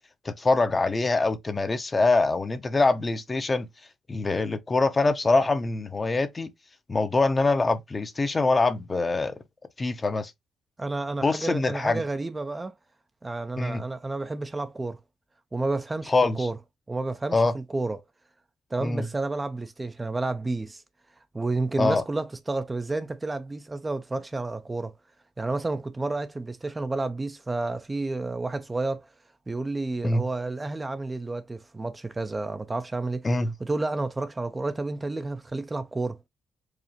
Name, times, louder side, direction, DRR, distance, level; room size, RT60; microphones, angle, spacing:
voice 1, 0.2-3.7 4.1-6.5 6.9-9.3 9.8-10.3 11.2-12.0 13.6-13.8 16.1-16.5 17.3-17.5 18.8-19.1 21.8-22.0 30.0-30.2 33.2-33.5, left 3 dB, 25° left, 0.7 m, -24 dB
voice 2, 10.8-12.7 13.2-15.0 15.5-16.6 16.9-18.0 18.7-20.8 21.3-24.9 25.4-29.1 29.5-33.3 33.6-36.2, right 2 dB, 20° right, 0.4 m, -30 dB
4.9 x 2.4 x 3.0 m
cardioid pair, 90°, 0 cm